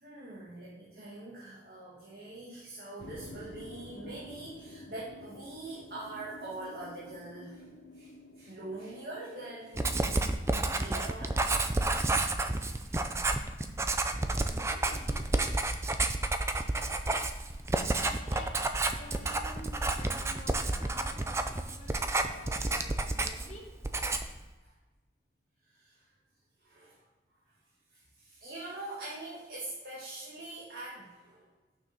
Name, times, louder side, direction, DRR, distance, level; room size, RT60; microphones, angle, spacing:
voice 1, 0.0-7.6 7.9-8.1 8.4-10.3 10.5-12.6 12.9-13.0 13.3-13.5 17.4-17.6 21.9-22.4 25.7-25.9 26.6-27.0 27.9-31.5, right 2 dB, 60° right, -7 dB, 1.8 m, -44 dB
sound 1, 3.0-10.0, left 1 dB, 75° left, 0.7 m, -50 dB
Writing, 9.8-23.6 23.8-24.4, right 2 dB, 15° right, 0.4 m, -30 dB
voice 2, 14.4-15.2 17.9-18.5 18.9-23.7, left 1 dB, 40° left, -1 dB, 1.5 m, -50 dB
6.7 x 5.9 x 5.4 m, 1.2 s
head